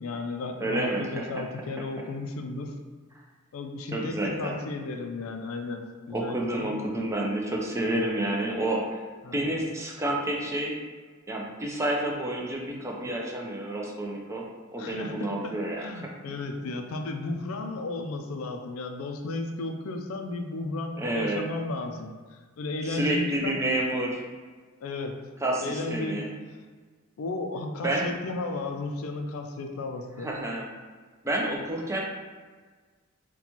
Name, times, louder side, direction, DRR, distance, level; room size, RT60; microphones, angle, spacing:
voice 1, 0.0-2.7 3.5-6.7 7.9-8.0 9.2-9.5 14.8-23.6 24.8-25.2 25.6-26.3 27.2-30.3, left 3 dB, 75° left, 4 dB, 0.4 m, -34 dB
voice 2, 0.6-1.4 3.9-4.5 6.1-9.0 9.3-10.7 11.3-14.4 14.7-15.9 16.6-16.7 21.0-21.4 22.8-24.2 25.4-26.3 27.8-28.1 30.2-30.7 31.2-32.0, right 1 dB, 15° right, -2 dB, 0.4 m, -29 dB
4.0 x 2.2 x 2.9 m, 1.5 s
head